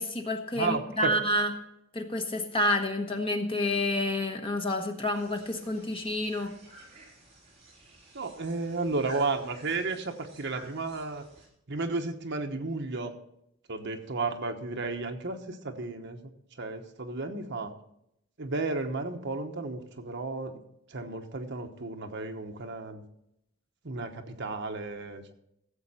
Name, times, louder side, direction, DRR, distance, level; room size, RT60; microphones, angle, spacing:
voice 1, 0.0-1.5 1.9-6.5, left 1 dB, 25° left, 4 dB, 1.2 m, -29 dB
voice 2, 0.5-1.1 8.1-11.2 11.7-13.1 13.7-16.2 16.6-17.7 18.4-20.6 20.9-23.0 23.8-25.3, right 3 dB, 55° right, 5 dB, 1.1 m, -33 dB
sound 1, 5.1-11.5, right 2 dB, 30° right, 4.1 m, -52 dB
16.0 x 7.7 x 4.3 m, 0.78 s
head